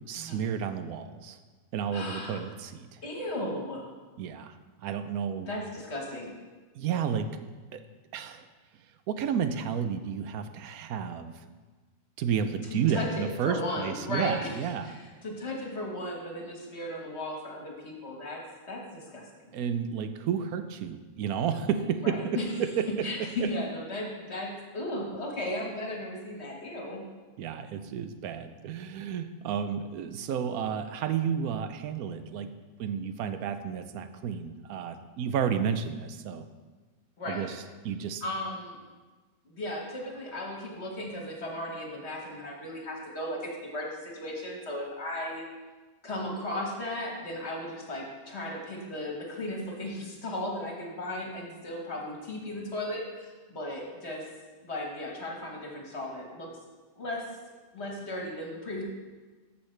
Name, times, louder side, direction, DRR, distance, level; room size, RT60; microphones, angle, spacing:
voice 1, 0.1-1.4 1.7-3.0 4.2-4.5 4.8-5.5 6.7-7.3 7.7-7.8 8.1-8.5 9.1-11.3 12.2-15.0 19.5-23.1 23.4-23.5 27.4-32.5 32.8-36.5 37.3-38.2, right 7 dB, 90° right, 9 dB, 1.1 m, -31 dB
voice 2, 1.9-2.4 3.0-3.9 5.4-6.3 12.7-14.5 14.8-19.2 22.0-22.5 23.0-27.0 37.2-37.5 38.2-38.8 39.4-45.4 46.0-54.2 54.6-56.5 57.0-57.3 57.7-58.8, left 1 dB, 50° left, -1 dB, 1.7 m, -36 dB
14.5 x 5.7 x 3.3 m, 1.3 s
omnidirectional pair, 1.5 m